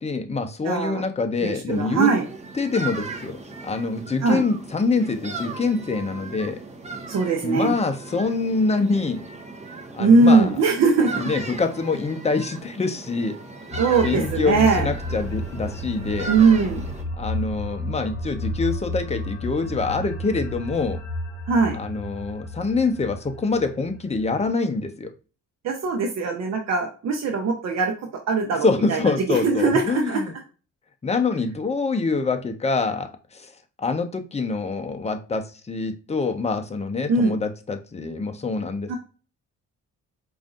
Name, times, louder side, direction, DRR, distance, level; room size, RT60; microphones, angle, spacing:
voice 1, 0.0-2.1 2.5-6.6 7.4-9.3 9.7-10.5 11.2-13.4 14.0-16.3 17.2-21.0 21.7-25.1 28.6-30.3 31.0-33.5 33.8-39.0, left 4 dB, 20° left, 0.7 m, -25 dB
voice 2, 0.6-1.0 1.4-2.2 4.2-4.4 7.1-7.7 10.0-11.1 13.8-14.9 16.3-16.8 21.5-21.8 25.6-27.9 28.3-30.2 37.1-37.4 38.9-39.0, right 4 dB, 60° right, 0.8 m, -20 dB
sound 1, 1.7-17.0, right 3 dB, 20° right, 0.9 m, -37 dB
sound 2, 13.7-24.5, left 1 dB, 45° left, 1.9 m, -32 dB
4.9 x 2.7 x 2.4 m
cardioid pair, 90°, 30 cm